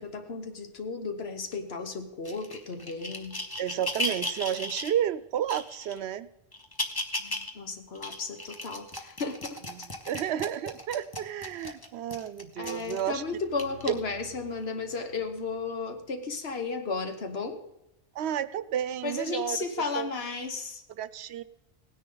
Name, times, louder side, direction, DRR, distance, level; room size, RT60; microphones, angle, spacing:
voice 1, 0.0-3.4 7.2-9.9 12.6-17.6 19.0-20.8, left 4 dB, 75° left, 7 dB, 1.4 m, -34 dB
sound 1, 2.3-4.9 5.5-6.0 6.5-7.5 8.0-13.1 13.6-13.9 14.6-14.7, left 1 dB, 20° left, 1.0 m, -36 dB
voice 2, 3.6-6.3 9.7-13.2 13.9-14.0 18.1-19.6 20.0-20.1 21.0-21.4, right 10 dB, 85° right, 16 dB, 0.9 m, -31 dB
sound 2, 12.6-16.5, equal, 55° left, 1.2 m, -53 dB
17.5 x 10.0 x 3.9 m, 0.86 s
omnidirectional pair, 1.1 m